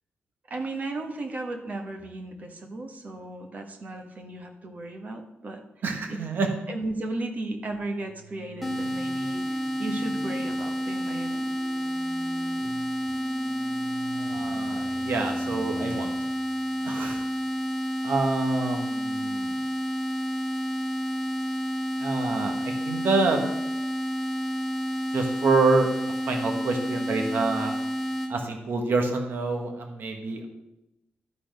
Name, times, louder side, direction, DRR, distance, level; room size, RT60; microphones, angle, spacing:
voice 1, 0.5-5.6 6.1-6.2 6.7-11.5, right 2 dB, 40° right, 4 dB, 1.2 m, -35 dB
voice 2, 5.8-6.5 14.1-16.1 16.8-17.2 18.0-19.6 22.0-23.4 25.1-25.9 26.3-27.8 28.3-30.5, right 3 dB, 60° right, 4 dB, 1.3 m, -27 dB
sound 1, 7.7-17.6, right 2 dB, 85° right, 2.3 m, -46 dB
sound 2, 8.6-28.3, equal, ahead, 1.4 m, -30 dB
12.5 x 4.2 x 5.2 m, 0.91 s
wide cardioid pair, 145°, 4 cm